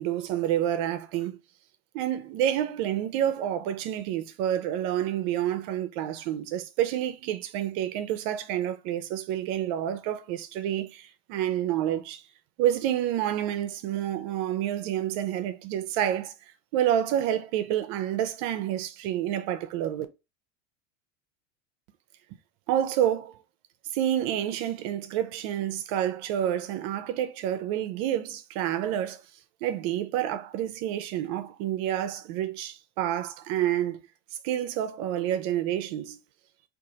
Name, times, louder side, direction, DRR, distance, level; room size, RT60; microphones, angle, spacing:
voice 1, 0.0-1.4 1.9-12.2 12.6-16.3 16.7-20.1 22.7-23.4 23.9-29.2 29.6-34.0 34.4-36.2, right 11 dB, 60° right, 0.6 m, -28 dB
3.7 x 2.6 x 2.7 m
supercardioid pair, 100°, 39 cm